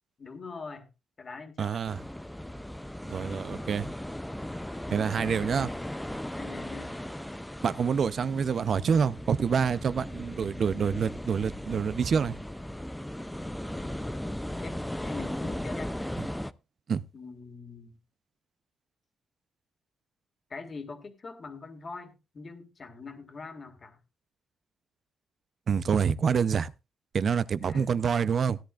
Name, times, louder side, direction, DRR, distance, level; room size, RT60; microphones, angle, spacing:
voice 1, 0.2-0.9 1.2-1.9 5.0-5.5 6.4-7.0 13.8-15.9 17.1-18.0 20.5-24.0 27.7-28.0, left 4 dB, 35° left, 1.9 m, -44 dB
voice 2, 1.6-2.0 3.1-3.9 4.9-5.7 7.6-12.4 16.9-17.0 25.7-26.7 27.1-28.6, right 6 dB, 50° right, 0.5 m, -27 dB
sound 1, 1.9-16.5, left 1 dB, 5° left, 0.5 m, -37 dB
16.5 x 10.5 x 2.4 m
cardioid pair, 105°, 0 cm